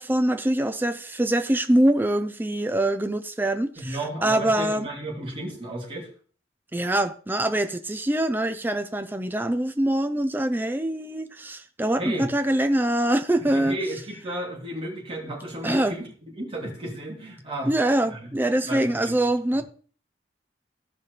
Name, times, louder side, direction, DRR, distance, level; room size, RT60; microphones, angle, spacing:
voice 1, 0.0-4.9 6.7-13.8 15.6-16.0 17.7-19.6, right 1 dB, 10° right, 0.5 m, -24 dB
voice 2, 3.8-6.1 12.0-12.3 13.5-17.7 18.1-18.3 18.6-19.2 19.5-19.6, right 1 dB, 30° right, 2.9 m, -33 dB
15.5 x 5.5 x 3.3 m
head